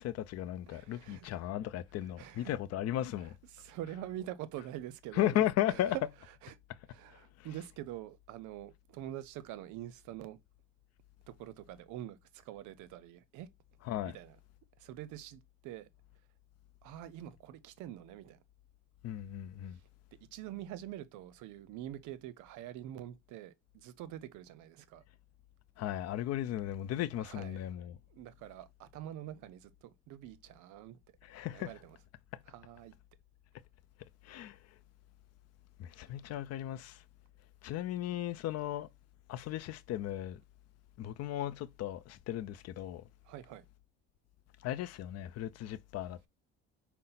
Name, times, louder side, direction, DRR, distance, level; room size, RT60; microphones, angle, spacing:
voice 1, 0.0-3.4 5.1-6.0 6.7-6.8 7.1-7.5 13.8-14.2 19.0-19.8 25.8-28.0 31.2-31.8 32.3-32.4 34.0-34.8 35.8-37.0 37.6-38.9 39.3-40.4 41.0-43.1 44.6-46.3, left 12 dB, 55° left, 0.5 m, -36 dB
voice 2, 0.7-1.3 2.2-2.5 3.6-5.4 5.7-5.8 6.4-6.5 6.9-10.4 11.3-13.5 14.1-14.3 14.8-15.9 16.8-18.4 20.3-25.0 27.2-27.6 28.1-31.0 31.5-31.8 32.5-32.9 43.3-43.6, right 12 dB, 70° right, 0.6 m, -45 dB
5.5 x 2.1 x 3.9 m
supercardioid pair, 85°, 31 cm